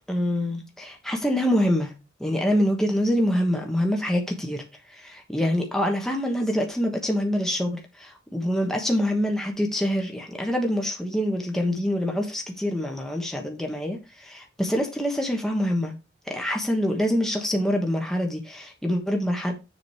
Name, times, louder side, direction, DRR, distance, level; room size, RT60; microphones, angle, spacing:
voice 1, 0.0-1.9 2.2-15.9 16.3-19.5, equal, 5° left, 1.3 m, -25 dB
7.0 x 5.1 x 4.9 m
head